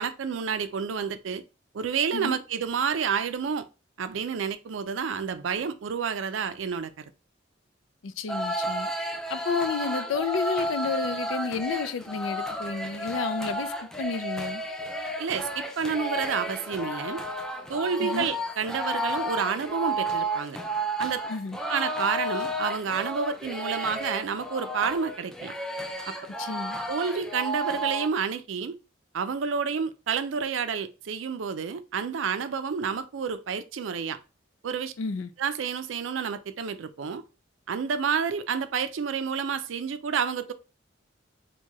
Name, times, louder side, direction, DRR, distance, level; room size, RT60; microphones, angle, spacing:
voice 1, 0.0-1.4 1.7-3.7 4.0-7.0 15.2-17.2 17.7-20.6 21.0-21.2 21.7-25.5 26.1-26.2 26.9-28.7 29.1-34.2 34.6-34.9 35.4-37.2 37.7-40.5, right 6 dB, 85° right, 0.4 m, -29 dB
voice 2, 8.0-8.9 9.3-14.6 18.0-18.3 21.3-21.6 26.4-26.8 35.0-35.3, left 5 dB, 85° left, 0.4 m, -31 dB
sound 1, 8.3-28.1, right 1 dB, 5° left, 0.3 m, -32 dB
4.5 x 2.2 x 2.9 m
head